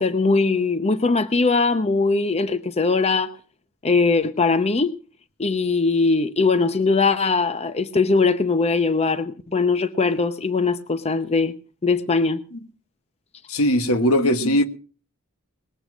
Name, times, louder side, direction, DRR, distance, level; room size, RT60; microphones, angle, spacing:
voice 1, 0.0-3.3 3.8-5.0 5.4-11.6 11.8-12.4, left 4 dB, 30° left, 0.7 m, -20 dB
voice 2, 13.5-14.7, equal, 75° left, 1.4 m, -19 dB
20.0 x 7.8 x 6.0 m
head